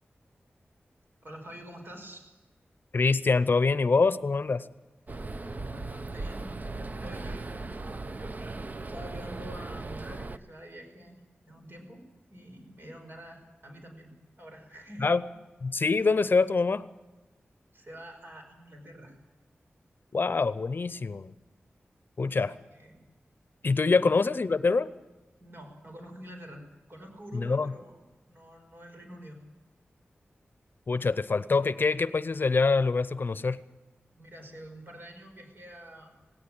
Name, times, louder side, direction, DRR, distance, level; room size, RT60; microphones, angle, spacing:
voice 1, 1.2-2.2 5.3-7.5 8.9-11.2 11.5-12.0 12.3-15.1 17.7-19.2 22.3-23.0 23.9-24.0 25.4-26.6 26.9-28.0 28.3-29.4 34.1-36.1, equal, 55° right, 3 dB, 5.3 m, -47 dB
voice 2, 2.9-4.7 15.0-15.2 15.6-16.8 20.1-21.3 22.2-22.5 23.6-24.9 27.3-27.7 30.9-33.6, left 4 dB, 55° left, 15 dB, 0.7 m, -25 dB
sound 1, 5.1-10.4, right 3 dB, 40° right, 0.7 m, -38 dB
17.5 x 17.5 x 8.8 m, 1.2 s
wide cardioid pair, 75°, 4 cm